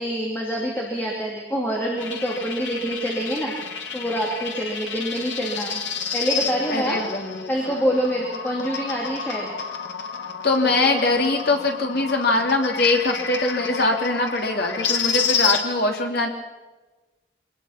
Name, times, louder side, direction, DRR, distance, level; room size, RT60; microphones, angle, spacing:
voice 1, 0.0-3.5 3.9-5.8 6.1-7.0 7.5-9.6 10.6-10.7, equal, 10° left, -2 dB, 2.8 m, -26 dB
sound 1, 2.0-15.6, left 6 dB, 75° left, 2.1 m, -30 dB
voice 2, 6.7-7.8 10.4-16.3, left 2 dB, 55° left, 2 dB, 3.0 m, -22 dB
23.5 x 20.0 x 5.9 m, 1.2 s
head